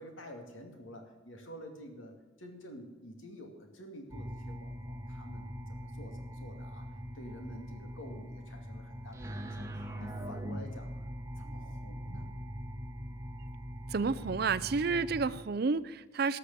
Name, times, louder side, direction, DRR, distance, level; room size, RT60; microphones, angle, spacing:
voice 1, 0.0-2.1 2.4-6.9 7.1-11.0 11.4-12.3, equal, 75° left, 4 dB, 2.5 m, -49 dB
sound 1, 4.1-15.3, equal, 15° right, 1.0 m, -42 dB
voice 2, 13.9-16.4, right 4 dB, 50° right, 17 dB, 0.5 m, -30 dB
12.5 x 6.7 x 8.5 m, 1.3 s
head